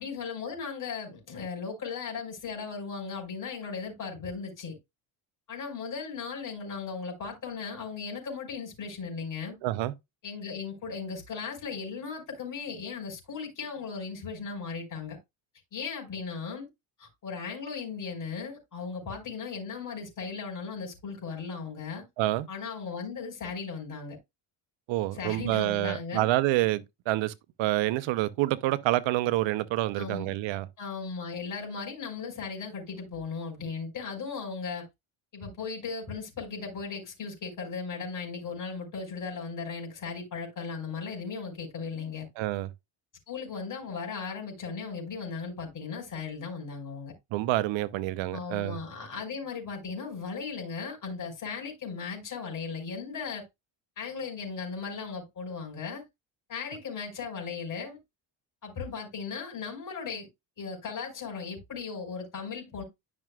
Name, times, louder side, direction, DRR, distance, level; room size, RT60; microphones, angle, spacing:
voice 1, 0.0-4.8 5.5-9.5 10.2-15.2 15.7-16.7 17.0-22.0 22.5-24.2 25.1-26.3 30.0-30.3 30.8-34.9 35.3-42.3 43.3-47.1 48.3-53.4 54.0-56.0 56.5-58.0 58.6-60.3 60.6-62.8, left 5 dB, 40° left, 4.7 m, -37 dB
voice 2, 9.6-9.9 22.2-22.5 24.9-30.7 42.4-42.7 47.3-48.8, right 16 dB, 70° right, 0.9 m, -28 dB
10.5 x 6.1 x 2.3 m
cardioid pair, 120°, 47 cm